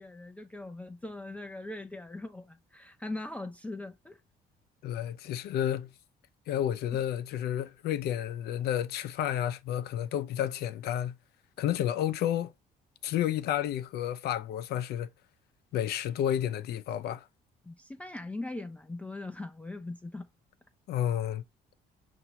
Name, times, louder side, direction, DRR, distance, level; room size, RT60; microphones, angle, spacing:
voice 1, 0.0-4.2 17.7-20.3, left 2 dB, 10° left, 0.3 m, -40 dB
voice 2, 4.8-5.9 6.5-11.1 11.6-12.5 13.0-15.1 15.7-17.2 20.9-21.4, left 11 dB, 70° left, 0.6 m, -31 dB
5.6 x 2.6 x 2.9 m
cardioid pair, 110°, 17 cm